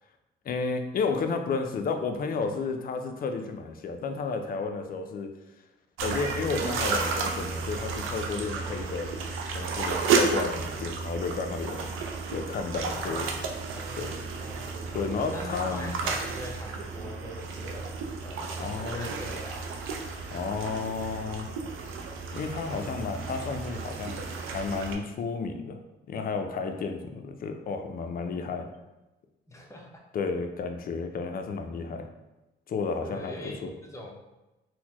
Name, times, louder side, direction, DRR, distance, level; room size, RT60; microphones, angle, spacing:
voice 1, 0.5-5.3 6.0-9.1 9.5-11.9 12.3-13.4 14.0-14.1 14.9-15.9 18.6-19.1 20.3-21.5 22.3-24.2 24.5-25.8 26.1-28.7 30.1-32.1 32.7-33.7, left 4 dB, 45° left, 6 dB, 0.4 m, -32 dB
sound 1, 6.0-24.9, right 4 dB, 85° right, 0.5 m, -32 dB
voice 2, 12.9-13.4 13.7-17.9 18.2-19.6 22.4-23.0 29.5-29.9 33.0-34.2, left 1 dB, 15° left, -1 dB, 0.7 m, -42 dB
4.2 x 2.1 x 2.9 m, 1.0 s
cardioid pair, 90°, 20 cm